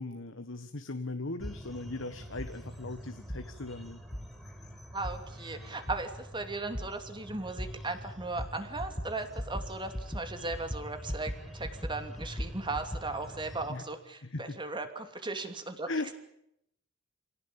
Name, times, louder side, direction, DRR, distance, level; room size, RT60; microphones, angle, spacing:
voice 1, 0.0-4.0 13.7-13.8 14.2-14.6 15.9-16.1, left 2 dB, 65° left, 9 dB, 1.5 m, -38 dB
Heart Beat, 1.4-1.6 2.4-2.5 3.3-3.4 4.1-4.2 5.0-5.2 5.9-6.0 6.7-6.9 7.6-7.7 8.4-8.5 8.8-9.1 9.4-9.7 9.9-10.2 10.5-11.4 11.6-13.0, equal, 15° left, 1.6 m, -36 dB
sound 1, 1.4-13.7, equal, ahead, 4.9 m, -47 dB
voice 2, 4.9-15.9, right 3 dB, 25° right, 7 dB, 2.8 m, -37 dB
27.5 x 17.5 x 8.7 m, 0.77 s
head